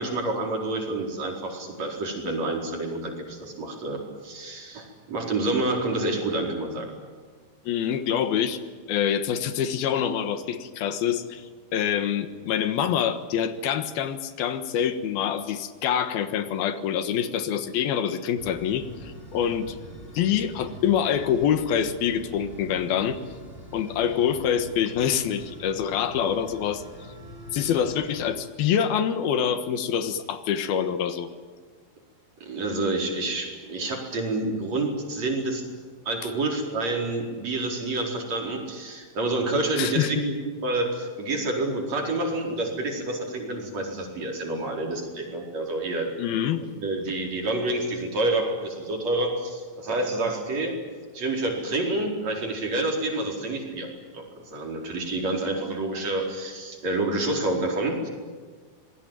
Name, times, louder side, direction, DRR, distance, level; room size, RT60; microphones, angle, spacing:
voice 1, 0.0-6.9 32.4-35.6 36.1-46.2 46.8-50.8 51.1-58.1, right 2 dB, 45° right, 1 dB, 5.6 m, -28 dB
voice 2, 7.7-8.6 8.9-11.5 11.7-19.8 20.2-23.2 23.7-26.8 27.5-31.3 39.8-40.1 46.2-46.6, left 8 dB, 85° left, 10 dB, 3.3 m, -26 dB
sound 1, 18.4-28.4, left 1 dB, 15° left, 3.9 m, -43 dB
26.5 x 21.0 x 9.2 m, 1.5 s
omnidirectional pair, 4.2 m